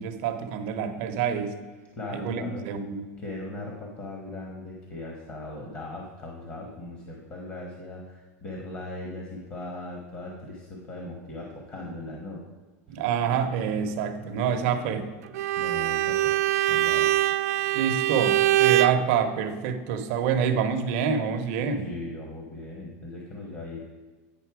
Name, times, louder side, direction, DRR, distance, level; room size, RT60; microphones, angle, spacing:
voice 1, 0.0-1.6 2.1-3.0 12.9-15.1 17.7-21.9, right 7 dB, 55° right, 7 dB, 0.8 m, -27 dB
voice 2, 2.0-2.7 3.2-12.4 12.9-13.0 15.6-16.3 16.7-17.1 21.8-23.9, left 2 dB, 25° left, -1 dB, 1.2 m, -38 dB
Bowed string instrument, 15.3-19.0, right 14 dB, 80° right, 0.4 m, -23 dB
9.2 x 5.4 x 4.7 m, 1.3 s
supercardioid pair, 155°, 8 cm